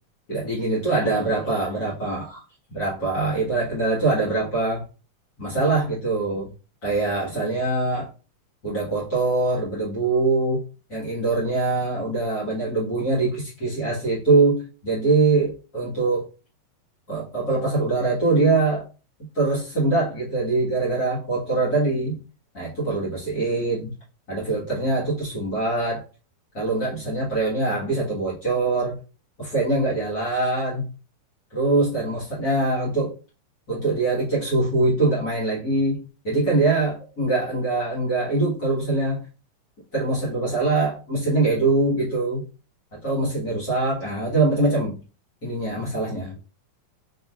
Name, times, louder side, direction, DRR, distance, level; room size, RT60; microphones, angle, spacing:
voice 1, 0.3-2.4 2.7-4.8 5.4-6.5 6.8-8.1 8.6-10.6 10.9-16.3 17.1-18.8 19.3-22.2 22.5-23.9 24.3-26.0 26.5-29.0 29.4-30.9 31.5-33.1 33.7-39.3 39.9-42.4 43.0-45.0 45.4-46.4, right 3 dB, 40° left, -9 dB, 1.4 m, -23 dB
5.5 x 3.3 x 2.4 m, 0.34 s
omnidirectional pair, 4.0 m